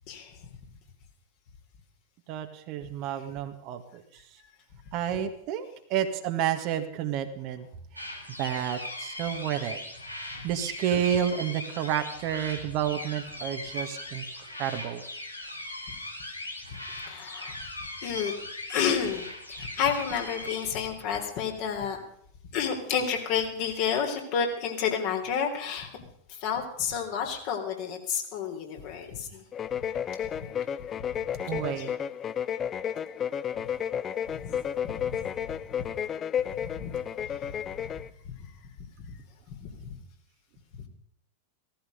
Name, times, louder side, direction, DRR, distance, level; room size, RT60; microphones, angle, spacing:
voice 1, 0.1-0.4 17.1-17.6 18.0-18.3 18.7-22.0 22.5-25.9 26.3-29.4 30.3-30.5 31.1-31.2 31.5-31.9 34.3-34.5 34.8-35.3 36.6-37.0 37.4-37.5 37.8-37.9 38.2-38.5 39.0-39.1 39.5-40.0 40.8-40.9, left 7 dB, 45° left, 2 dB, 3.7 m, -31 dB
voice 2, 2.3-4.0 4.9-7.7 8.4-9.8 10.4-14.2 14.6-15.0 31.5-31.9, right 9 dB, 40° right, 6 dB, 1.8 m, -30 dB
sound 1, 8.0-20.7, left 1 dB, 85° left, 2.7 m, -39 dB
sound 2, 29.5-38.1, left 8 dB, 25° left, 0.5 m, -32 dB
16.5 x 15.0 x 5.4 m, 0.71 s
figure-of-eight pair, 90°, 0 cm